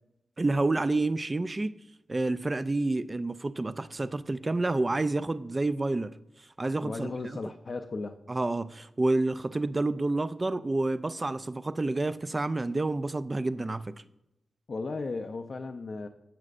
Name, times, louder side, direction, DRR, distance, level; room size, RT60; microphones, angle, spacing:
voice 1, 0.4-1.7 2.1-6.1 6.6-7.4 8.3-13.9, right 2 dB, 20° right, 0.3 m, -29 dB
voice 2, 6.8-8.2 14.7-16.1, left 3 dB, 40° left, 0.5 m, -35 dB
16.0 x 7.5 x 2.5 m
wide cardioid pair, 170°, 0 cm